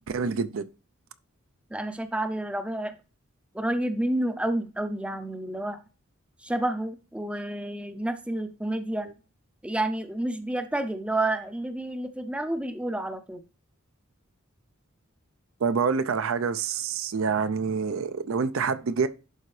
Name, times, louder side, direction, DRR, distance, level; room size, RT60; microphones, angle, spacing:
voice 1, 0.1-0.7 15.6-19.1, right 5 dB, 70° right, 0.5 m, -27 dB
voice 2, 1.7-3.0 3.5-5.8 6.4-9.1 9.6-13.4, right 1 dB, 5° right, 0.5 m, -30 dB
11.0 x 3.8 x 3.2 m
head